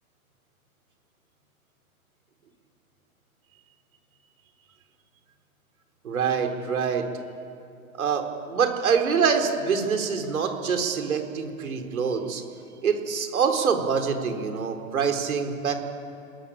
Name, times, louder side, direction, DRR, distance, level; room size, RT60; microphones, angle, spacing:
voice 1, 6.0-7.1 8.0-12.4 12.8-15.8, right 6 dB, 70° right, 5 dB, 4.2 m, -25 dB
29.5 x 21.0 x 8.9 m, 2.7 s
hypercardioid pair, 170°, 43 cm